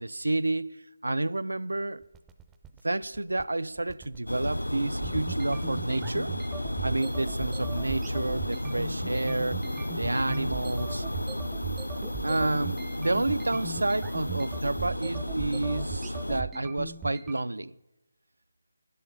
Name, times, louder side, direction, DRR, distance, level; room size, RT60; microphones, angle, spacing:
voice 1, 0.0-2.0 2.8-6.3 6.8-9.6 10.0-11.1 12.2-17.7, right 2 dB, 70° right, 0.4 m, -30 dB
sound 1, 2.0-17.3, right 6 dB, 10° right, 0.5 m, -39 dB
sound 2, 4.3-16.4, left 1 dB, 85° left, 0.4 m, -33 dB
sound 3, 7.0-14.9, left 7 dB, 35° left, 0.6 m, -54 dB
11.5 x 11.0 x 5.4 m
figure-of-eight pair, 155°, 0 cm